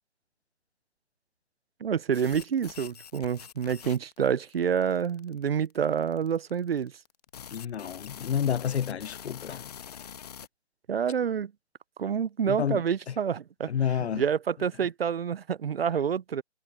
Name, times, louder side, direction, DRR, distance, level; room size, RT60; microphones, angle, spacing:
voice 1, 1.8-6.9 10.9-11.5 12.0-13.7 14.0-16.4, right 7 dB, 60° right, 0.7 m, -28 dB
sound 1, 2.1-10.5, left 9 dB, 35° left, 1.4 m, -45 dB
voice 2, 7.5-9.7 12.5-12.8 13.1-13.2 13.7-14.2, left 8 dB, 70° left, 0.6 m, -29 dB
hypercardioid pair, 160°, 34 cm